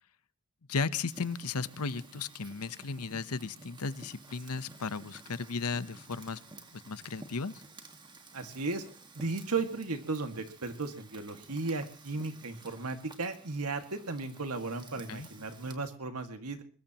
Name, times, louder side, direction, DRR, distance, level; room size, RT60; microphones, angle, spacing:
voice 1, 0.7-6.4 6.7-7.6 15.1-15.3, left 4 dB, 85° left, 15 dB, 0.9 m, -35 dB
Fire, 1.1-15.7, right 2 dB, 20° right, 1.8 m, -53 dB
voice 2, 8.3-8.8 9.2-16.6, right 3 dB, 90° right, 7 dB, 2.0 m, -35 dB
23.0 x 21.0 x 3.0 m, 0.41 s
head